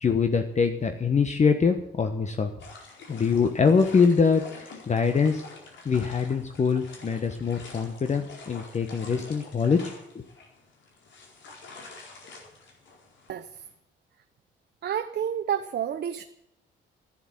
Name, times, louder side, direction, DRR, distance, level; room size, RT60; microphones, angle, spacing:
voice 1, 0.0-2.5 3.1-5.4 5.8-9.9, left 5 dB, 35° left, 7 dB, 1.2 m, -24 dB
sound 1, 2.6-13.7, left 3 dB, 70° left, 4.5 m, -47 dB
voice 2, 14.8-16.3, right 9 dB, 55° right, 9 dB, 0.8 m, -29 dB
11.5 x 10.0 x 9.8 m, 0.79 s
cardioid pair, 90°, 20 cm